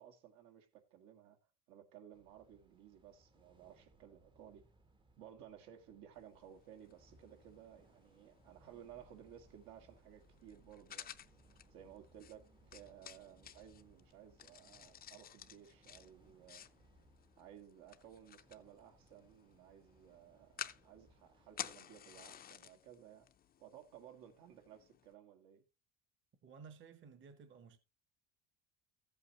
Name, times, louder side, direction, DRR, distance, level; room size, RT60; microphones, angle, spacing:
voice 1, 0.0-1.4 1.7-4.6 5.2-11.1 11.7-16.7 17.4-23.3 23.6-25.6, right 10 dB, 75° right, 1.8 m, -57 dB
sound 1, 2.1-21.8, right 2 dB, 15° right, 0.7 m, -68 dB
sound 2, 6.1-25.1, left 9 dB, 25° left, 0.5 m, -54 dB
voice 2, 26.4-27.8, right 6 dB, 35° right, 1.0 m, -56 dB
14.0 x 8.3 x 2.9 m
cardioid pair, 150°, 36 cm